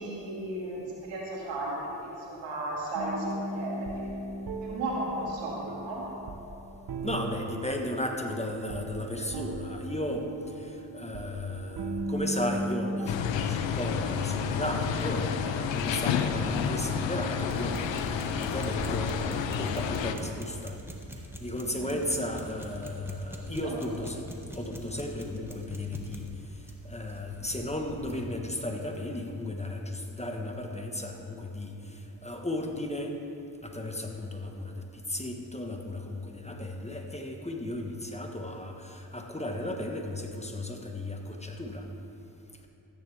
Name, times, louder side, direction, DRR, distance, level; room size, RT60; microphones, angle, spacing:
voice 1, 0.0-3.8 4.6-6.0 16.3-16.6 21.6-22.0 23.4-23.7, right 1 dB, 90° right, -5 dB, 2.4 m, -35 dB
sound 1, 2.9-13.1, right 1 dB, 55° right, 1.0 m, -37 dB
voice 2, 7.0-10.3 10.6-20.8 21.4-24.2 24.5-26.3 26.8-33.2 33.6-41.9, left 1 dB, 15° left, 2 dB, 1.3 m, -35 dB
sound 2, 13.1-20.1, left 7 dB, 85° left, 0.6 m, -30 dB
sound 3, 16.4-28.3, equal, 5° right, 1.5 m, -42 dB
14.0 x 9.0 x 3.5 m, 2.7 s
supercardioid pair, 45°, 43 cm